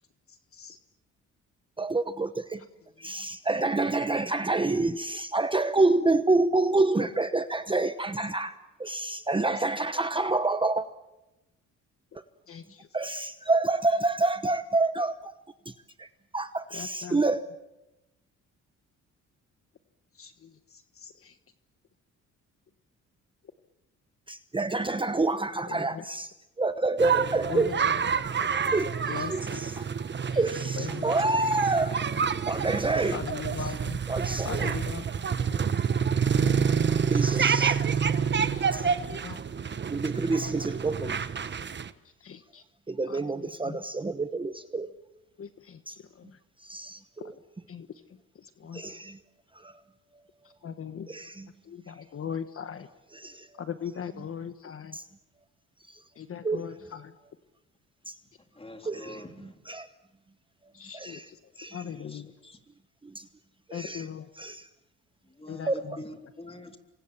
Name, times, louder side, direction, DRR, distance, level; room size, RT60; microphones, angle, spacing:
voice 1, 0.3-0.8 12.5-12.9 16.7-17.2 20.1-21.4 25.7-26.0 27.5-27.9 29.1-29.7 30.3-30.4 30.8-31.1 33.1-34.0 34.4-35.0 36.4-36.8 38.3-39.4 42.2-42.6 43.0-43.8 45.4-46.4 47.7-47.9 48.3-48.9 50.6-51.1 51.6-52.9 53.6-55.0 56.1-57.1 60.7-61.4 61.7-62.3 63.7-64.3 65.5-66.0, left 7 dB, 45° left, 10 dB, 1.4 m, -39 dB
voice 2, 1.8-2.6 3.0-8.5 8.8-10.9 12.9-15.3 15.6-15.7 16.0-16.1 16.3-17.4 24.3-26.3 26.6-27.8 28.7-28.9 29.3-29.9 30.3-33.2 34.1-34.8 35.5-35.6 37.1-37.8 38.7-38.8 39.9-41.2 42.9-44.9 45.9-46.0 46.6-47.3 48.7-49.2 49.5-49.8 51.1-51.5 53.1-53.5 54.9-55.0 55.9-56.0 56.4-56.7 58.1-58.2 58.9-59.9 60.9-61.3 61.6-61.8 63.0-63.3 63.7-64.1 64.4-64.7 65.7-65.8, right 2 dB, 15° right, 10 dB, 1.0 m, -28 dB
sound 1, 27.0-41.9, right 6 dB, 35° right, 1.2 m, -28 dB
voice 3, 58.6-59.5 61.8-62.6 65.4-66.8, left 1 dB, 20° left, 5 dB, 3.7 m, -45 dB
29.0 x 24.5 x 7.3 m, 0.98 s
cardioid pair, 90°, 30 cm